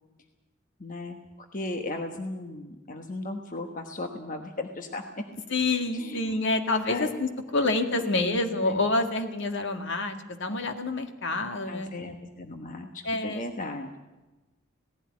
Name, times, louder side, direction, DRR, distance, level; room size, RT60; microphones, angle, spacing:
voice 1, 0.8-1.2 1.5-5.3 5.9-6.4 6.9-7.1 8.0-8.4 8.7-8.8 11.7-14.0, left 2 dB, 40° left, 5 dB, 1.3 m, -36 dB
voice 2, 5.5-11.9 13.1-13.4, left 2 dB, 60° left, 6 dB, 1.9 m, -27 dB
18.0 x 15.5 x 9.6 m, 1.1 s
head